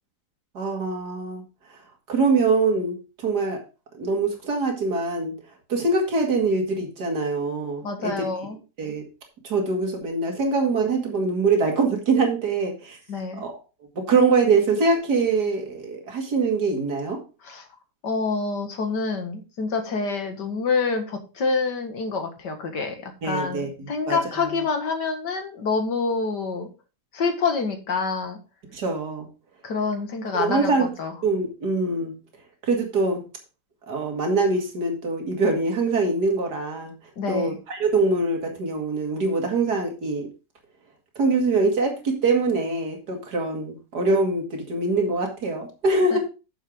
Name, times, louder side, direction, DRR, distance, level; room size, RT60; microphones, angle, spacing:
voice 1, 0.5-1.4 2.1-3.6 4.0-5.3 5.7-8.2 8.8-9.0 9.4-13.0 13.4-13.5 14.0-17.2 23.2-23.7 24.1-24.5 28.7-29.3 30.3-30.9 31.2-32.1 32.7-33.2 33.9-36.9 37.3-40.3 41.2-46.2, right 3 dB, 65° right, 2 dB, 2.8 m, -23 dB
voice 2, 7.8-8.6 13.1-13.4 17.4-17.7 18.0-26.7 27.1-28.4 29.6-31.1 37.2-37.6 46.1-46.2, left 4 dB, 75° left, 5 dB, 2.4 m, -27 dB
9.4 x 7.2 x 3.8 m, 0.31 s
omnidirectional pair, 1.8 m